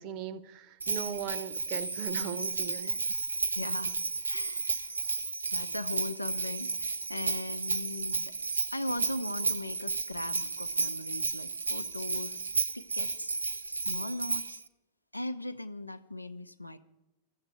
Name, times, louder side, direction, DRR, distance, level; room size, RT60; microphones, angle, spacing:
voice 1, 0.0-3.0, right 8 dB, 40° right, 0.9 m, -38 dB
Bell, 0.8-14.6, right 3 dB, 80° right, 0.6 m, -33 dB
voice 2, 3.5-3.9 4.3-5.0 5.5-8.3 8.7-12.5 12.7-14.6 15.1-16.8, left 1 dB, 85° left, 0.5 m, -39 dB
14.5 x 7.9 x 8.8 m
figure-of-eight pair, 90°, 0 cm